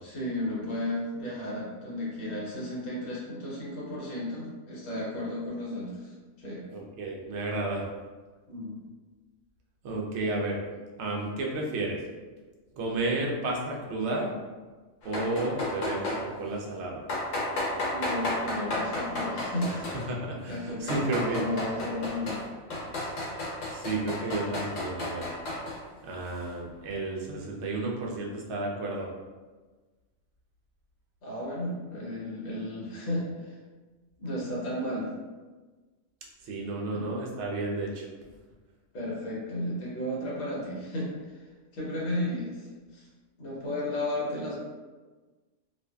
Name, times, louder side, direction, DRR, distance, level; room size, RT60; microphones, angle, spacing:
voice 1, 0.0-6.6 8.5-8.8 17.9-19.9 20.5-22.4 31.2-33.6 34.2-35.1 36.9-37.1 38.9-41.4 41.7-43.1 43.4-44.5, left 1 dB, 50° left, -6 dB, 0.9 m, -34 dB
voice 2, 6.7-7.9 9.8-10.6 11.0-12.0 12.7-14.3 15.0-17.0 20.1-21.5 23.7-25.3 26.0-29.1 36.4-38.1, right 2 dB, 65° right, -1 dB, 0.8 m, -32 dB
sound 1, 15.0-16.2 17.1-20.1 20.6-22.4 22.7-25.8, left 2 dB, 80° left, 1.1 m, -32 dB
2.5 x 2.4 x 2.2 m, 1.3 s
omnidirectional pair, 1.3 m